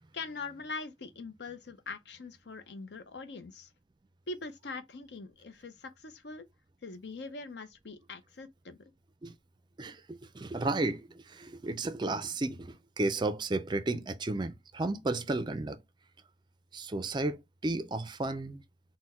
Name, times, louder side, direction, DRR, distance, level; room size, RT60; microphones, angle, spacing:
voice 1, 0.1-3.7 4.3-6.4 6.8-8.8, left 3 dB, 70° left, 0.7 m, -42 dB
voice 2, 9.8-15.8 16.7-18.6, right 2 dB, 25° right, 0.4 m, -33 dB
4.3 x 2.1 x 4.1 m
head